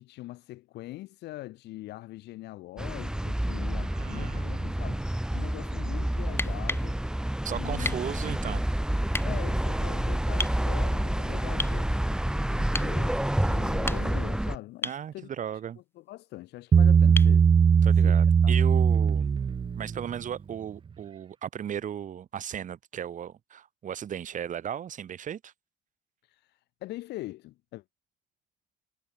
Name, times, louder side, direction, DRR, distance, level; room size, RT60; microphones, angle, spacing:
voice 1, 0.0-5.0 5.3-7.0 7.5-7.9 9.2-11.9 12.5-15.3 16.0-17.5 18.0-18.8 26.2-27.8, left 17 dB, 80° left, 4.0 m, -42 dB
sound 1, 2.8-14.6, right 1 dB, 5° right, 3.6 m, -28 dB
voice 2, 3.8-4.9 7.4-8.6 14.8-15.8 17.8-19.3 19.8-25.5, right 9 dB, 50° right, 3.1 m, -36 dB
sound 2, 6.3-6.9 7.8-8.1 9.1-9.3 10.4-10.6 11.6-11.8 12.7-12.9 13.7-14.3 14.8-15.0 17.2-17.4 19.2-19.3, left 2 dB, 15° left, 3.0 m, -33 dB
Bass guitar, 16.7-20.1, right 6 dB, 30° right, 0.7 m, -20 dB
cardioid pair, 110°, 17 cm